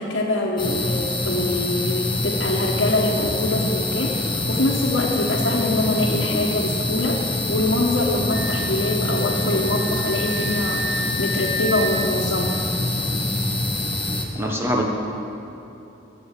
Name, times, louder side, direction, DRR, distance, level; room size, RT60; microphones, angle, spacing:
voice 1, 0.0-12.7, left 1 dB, 80° left, -6 dB, 1.3 m, -24 dB
sound 1, 0.6-14.3, left 2 dB, 25° left, 1.3 m, -25 dB
Wind instrument woodwind instrument, 8.3-11.9, right 1 dB, 55° right, 2.6 m, -32 dB
voice 2, 14.3-14.9, equal, 15° right, -1 dB, 1.1 m, -23 dB
16.0 x 7.1 x 7.4 m, 2.9 s
head